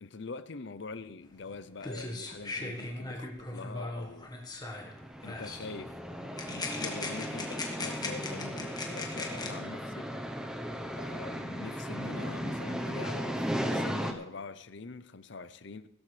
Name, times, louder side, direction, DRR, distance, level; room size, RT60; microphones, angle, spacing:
voice 1, 0.0-4.3 5.2-6.0 6.4-10.1 11.0-13.4 13.7-15.9, left 4 dB, 60° left, 0.6 m, -44 dB
sound 1, 1.5-1.6 1.8-4.9 5.3-5.7 6.4-9.5, left 2 dB, 20° left, 1.5 m, -39 dB
sound 2, 4.8-14.1, equal, 5° right, 0.9 m, -36 dB
16.5 x 13.5 x 3.3 m
head